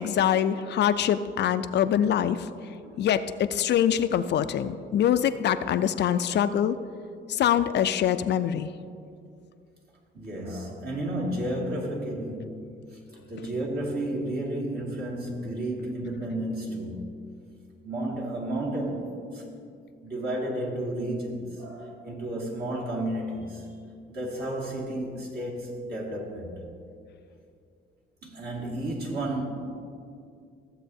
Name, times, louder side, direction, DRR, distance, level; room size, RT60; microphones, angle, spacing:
voice 1, 0.0-2.5 3.0-6.8 7.3-8.7, left 9 dB, 60° left, 11 dB, 0.4 m, -24 dB
voice 2, 10.1-17.1 17.8-19.4 20.0-23.7 24.1-26.6 28.2-29.5, right 1 dB, 55° right, -3 dB, 2.1 m, -32 dB
14.5 x 7.5 x 2.7 m, 2.4 s
cardioid pair, 90°, 20 cm